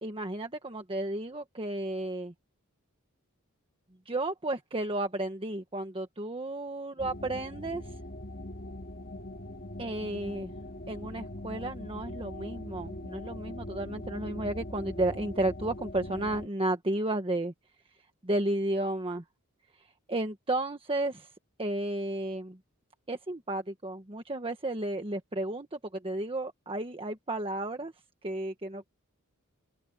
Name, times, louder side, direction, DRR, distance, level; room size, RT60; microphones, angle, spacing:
voice 1, 0.0-2.3 4.1-7.9 9.8-10.5 10.9-17.5 18.2-19.2 20.1-21.3 21.6-22.6 23.1-27.9 28.2-28.9, right 1 dB, 25° right, 1.4 m, -33 dB
sound 1, 7.0-16.5, left 1 dB, 45° left, 2.1 m, -41 dB
open air
head